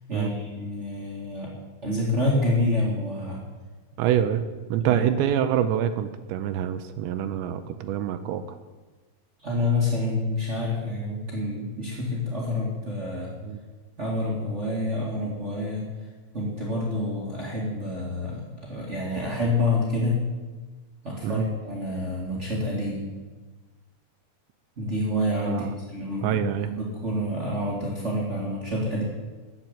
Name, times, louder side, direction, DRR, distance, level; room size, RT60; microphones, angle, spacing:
voice 1, 0.1-1.5 1.8-3.4 4.8-5.0 9.4-13.3 14.0-15.8 16.3-20.1 21.0-23.0 24.8-29.0, left 1 dB, 65° right, -4 dB, 0.7 m, -28 dB
voice 2, 4.0-4.4 4.7-8.6 13.4-13.6 21.2-21.4 25.5-25.7 26.2-26.7, right 10 dB, 80° right, 9 dB, 2.7 m, -26 dB
12.0 x 7.6 x 9.9 m, 1.3 s
omnidirectional pair, 5.6 m